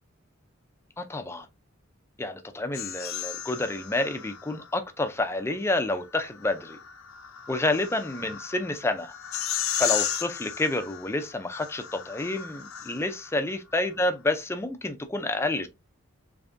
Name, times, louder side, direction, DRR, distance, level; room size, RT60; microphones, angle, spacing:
voice 1, 1.0-1.5 2.2-6.8 7.5-9.1 9.8-15.7, left 2 dB, 10° left, 0.4 m, -29 dB
sound 1, 2.7-4.7 6.2-13.3, left 10 dB, 75° left, 0.6 m, -35 dB
3.6 x 3.3 x 2.5 m
head